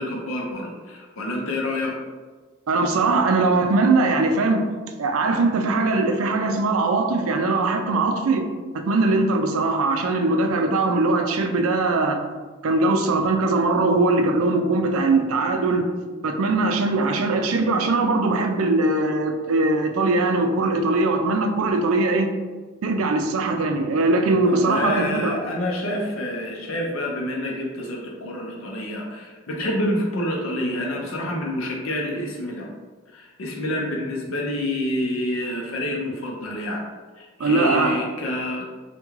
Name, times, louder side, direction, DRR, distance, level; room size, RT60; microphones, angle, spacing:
voice 1, 0.0-1.9 24.5-32.7 33.1-36.8 37.2-38.7, left 1 dB, 75° left, 0 dB, 0.5 m, -28 dB
voice 2, 2.7-4.7 5.0-8.4 8.7-12.2 12.6-15.9 16.2-22.3 22.8-25.4 37.4-38.0, right 3 dB, 85° right, 5 dB, 0.4 m, -21 dB
3.5 x 2.2 x 3.0 m, 1.4 s
head